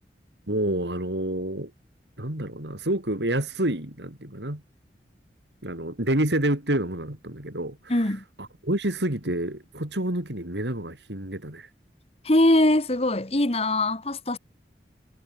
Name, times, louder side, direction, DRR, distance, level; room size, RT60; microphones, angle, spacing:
voice 1, 0.5-1.7 2.2-4.6 5.6-7.9 8.4-11.7, right 1 dB, 80° right, 4.3 m, -28 dB
voice 2, 7.9-8.2 12.2-14.4, left 1 dB, 35° left, 1.7 m, -22 dB
head